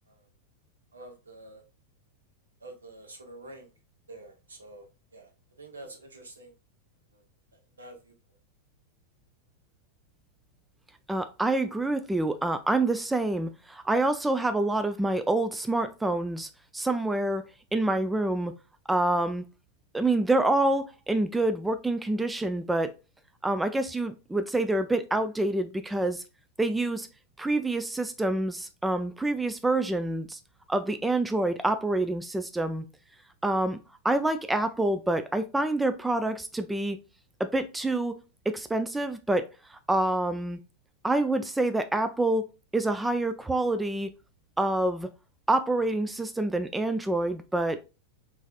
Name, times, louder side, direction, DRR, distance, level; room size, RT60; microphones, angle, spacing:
voice 1, 0.9-1.6 2.6-3.7 4.1-5.3 5.6-6.5 7.1-7.2 7.5-8.1, right 2 dB, 75° right, 1.0 m, -47 dB
voice 2, 11.1-17.4 17.7-18.5 18.9-19.4 19.9-22.9 23.4-26.2 26.6-27.1 27.4-30.4 30.7-32.9 33.4-33.8 34.0-37.0 37.4-38.2 38.5-40.6 41.0-42.4 42.7-44.1 44.6-45.1 45.5-47.8, right 2 dB, 5° right, 0.3 m, -27 dB
4.6 x 3.2 x 2.4 m
figure-of-eight pair, 90°, 0 cm